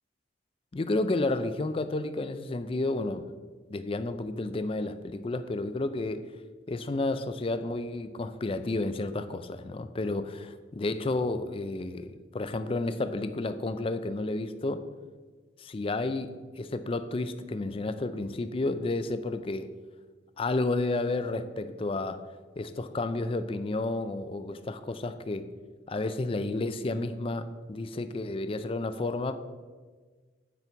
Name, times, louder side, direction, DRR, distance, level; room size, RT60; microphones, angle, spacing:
voice 1, 0.7-3.3 3.7-6.3 6.7-14.8 15.6-19.7 20.4-22.2 22.6-25.5 25.9-29.4, left 2 dB, 30° left, 11 dB, 0.4 m, -31 dB
8.3 x 5.4 x 4.5 m, 1.4 s
head